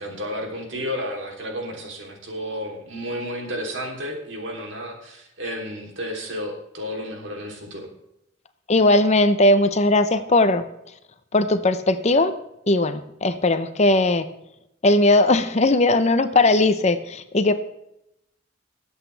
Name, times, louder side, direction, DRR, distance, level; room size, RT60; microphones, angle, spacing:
voice 1, 0.0-7.9, equal, 70° right, 1 dB, 3.2 m, -32 dB
voice 2, 8.7-10.6 11.3-12.3 12.7-14.3 14.8-17.5, left 2 dB, 35° left, 10 dB, 0.7 m, -18 dB
21.0 x 8.2 x 3.4 m, 0.83 s
head